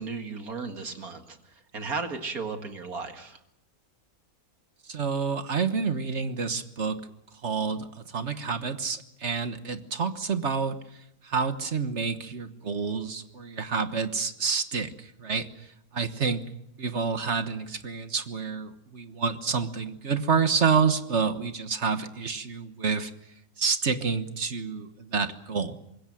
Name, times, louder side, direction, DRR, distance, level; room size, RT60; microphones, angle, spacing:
voice 1, 0.0-3.4, right 4 dB, 80° right, 6 dB, 2.5 m, -35 dB
voice 2, 4.9-7.0 7.4-7.9 8.1-10.8 11.2-15.5 15.9-16.4 16.8-23.1 23.6-25.8, right 5 dB, 55° right, 10 dB, 1.6 m, -28 dB
25.5 x 21.5 x 7.7 m, 0.80 s
omnidirectional pair, 1.5 m